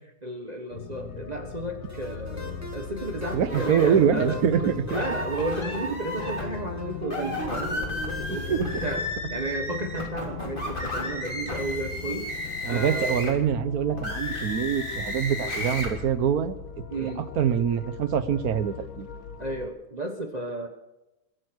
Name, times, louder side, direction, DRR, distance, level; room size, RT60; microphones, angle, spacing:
voice 1, 0.2-4.4 4.6-9.0 9.3-12.3 12.7-13.2 16.9-17.2 19.4-20.7, right 2 dB, 30° right, 4 dB, 1.4 m, -33 dB
sound 1, 0.7-19.7, left 8 dB, 70° left, 1.4 m, -39 dB
sound 2, 1.9-8.9, equal, 10° right, 1.6 m, -41 dB
voice 2, 3.3-4.8 8.5-8.8 12.6-16.5 17.0-17.1 17.4-19.1, right 8 dB, 80° right, 13 dB, 1.5 m, -24 dB
sound 3, 3.5-3.9 4.9-6.4 7.0-13.4 13.9-15.9, left 1 dB, 35° left, 3.8 m, -33 dB
23.0 x 9.5 x 6.4 m, 0.94 s
omnidirectional pair, 1.6 m